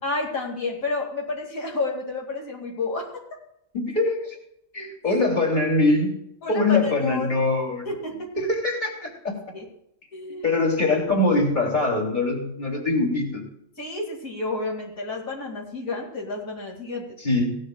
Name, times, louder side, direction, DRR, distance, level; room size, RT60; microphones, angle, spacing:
voice 1, 0.0-3.1 6.4-7.4 7.8-8.3 9.5-9.7 10.1-11.0 13.8-17.2, left 3 dB, 75° left, -1 dB, 2.7 m, -30 dB
voice 2, 3.7-4.3 4.7-6.1 6.5-7.9 8.4-9.3 10.4-13.4 17.2-17.6, left 2 dB, 35° left, 0 dB, 3.1 m, -23 dB
17.5 x 13.0 x 2.3 m, 0.75 s
omnidirectional pair, 1.4 m